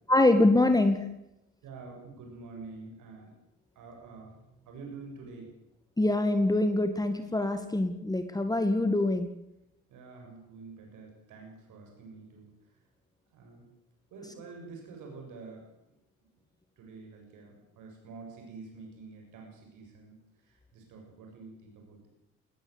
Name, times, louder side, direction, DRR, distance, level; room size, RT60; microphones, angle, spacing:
voice 1, 0.1-1.0 6.0-9.3, left 2 dB, 10° left, 8 dB, 1.9 m, -24 dB
voice 2, 1.6-3.3 3.8-4.4 4.6-5.5 9.9-12.8 13.3-13.7 14.1-15.7 16.8-22.1, right 4 dB, 85° right, 1 dB, 7.1 m, -47 dB
20.5 x 19.5 x 8.1 m, 0.87 s
cardioid pair, 90°, 30 cm